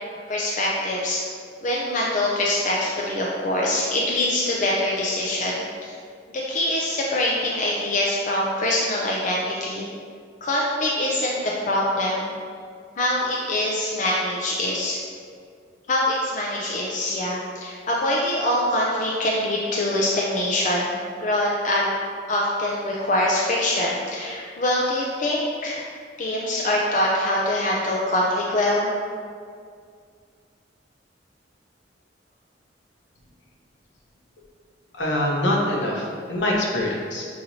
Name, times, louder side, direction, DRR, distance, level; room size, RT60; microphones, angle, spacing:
voice 1, 0.3-1.2 1.6-6.0 6.3-9.9 10.4-12.3 13.0-15.0 15.9-21.9 22.3-25.8 26.2-28.9, left 1 dB, 45° left, -3 dB, 0.4 m, -24 dB
voice 2, 35.0-37.3, left 1 dB, 75° left, -2 dB, 0.8 m, -24 dB
6.3 x 2.9 x 2.6 m, 2.1 s
head